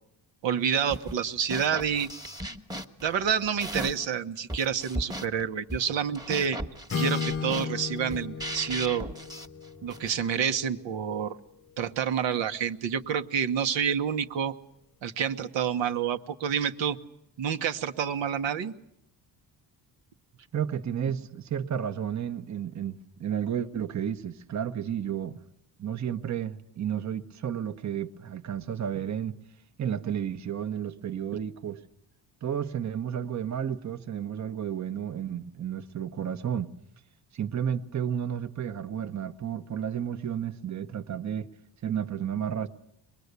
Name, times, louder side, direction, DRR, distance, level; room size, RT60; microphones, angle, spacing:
voice 1, 0.4-2.1 3.0-6.6 7.0-9.1 9.8-11.4 11.8-14.5 15.0-17.0 17.4-18.7, right 7 dB, 80° right, 1.3 m, -28 dB
sound 1, 0.9-1.2 1.5-4.1 4.5-10.2, right 1 dB, 10° right, 1.3 m, -37 dB
Acoustic guitar / Strum, 6.9-10.9, left 6 dB, 30° left, 0.9 m, -34 dB
voice 2, 20.5-25.4 25.8-29.3 29.8-31.8 32.4-36.7 37.3-41.5 41.8-42.7, right 9 dB, 40° right, 1.0 m, -32 dB
24.5 x 21.0 x 8.2 m
cardioid pair, 140°, 44 cm